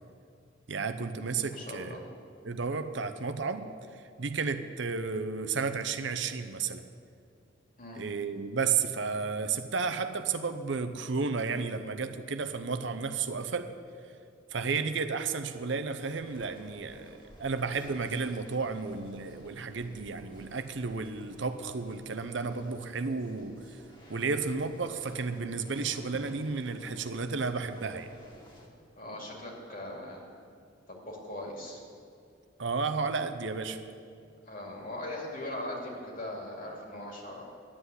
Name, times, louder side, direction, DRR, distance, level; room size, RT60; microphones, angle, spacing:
voice 1, 0.7-2.0 2.4-6.8 7.9-13.7 14.5-23.6 24.1-28.1 32.6-33.8, right 4 dB, 65° right, 8 dB, 0.7 m, -32 dB
voice 2, 1.4-2.0 7.8-8.0 29.0-30.2 30.9-31.8 34.4-37.4, left 1 dB, 45° left, -1 dB, 2.6 m, -40 dB
sound 1, 16.1-28.7, equal, 25° left, 2.0 m, -54 dB
11.5 x 8.0 x 9.9 m, 2.3 s
head